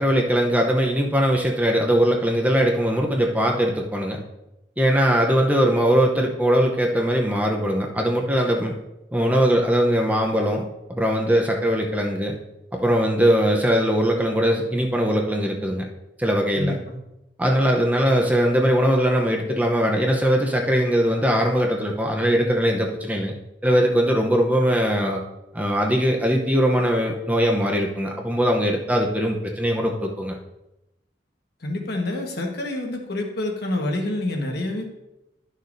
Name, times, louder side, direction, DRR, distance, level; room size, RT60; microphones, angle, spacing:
voice 1, 0.0-4.2 4.8-8.7 9.1-12.4 12.7-15.8 16.2-16.8 17.4-23.3 23.6-25.2 25.5-30.4, equal, 10° right, 0 dB, 0.7 m, -21 dB
voice 2, 16.6-17.0 31.6-34.8, left 1 dB, 60° left, 1 dB, 1.3 m, -27 dB
11.5 x 6.5 x 2.6 m, 0.92 s
head